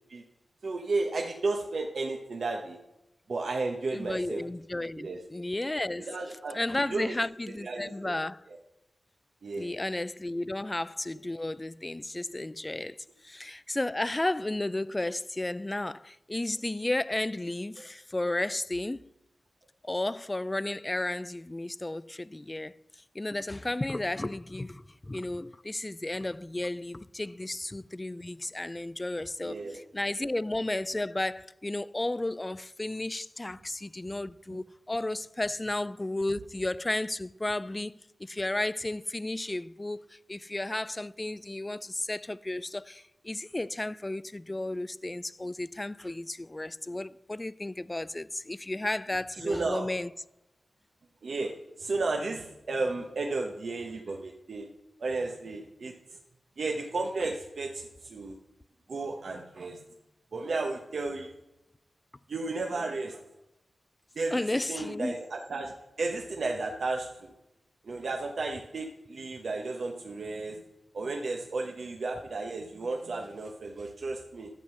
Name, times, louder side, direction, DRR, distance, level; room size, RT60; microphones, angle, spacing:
voice 1, 0.6-2.8 3.3-4.4 5.0-5.2 6.0-7.2 7.6-8.1 8.5-8.6 9.4-9.8 29.4-29.8 30.2-30.3 34.5-34.6 49.4-49.9 51.2-54.7 55.0-56.2 56.6-58.4 58.9-59.8 60.3-61.3 62.3-63.2 64.2-67.3 67.8-70.6 70.9-74.5, right 3 dB, 70° right, 1.0 m, -33 dB
voice 2, 3.9-6.1 6.5-8.4 9.6-13.0 13.2-19.1 19.8-22.8 23.1-50.1 64.3-65.2, left 2 dB, 25° left, 0.3 m, -33 dB
11.5 x 7.7 x 5.5 m
cardioid pair, 60°, 0 cm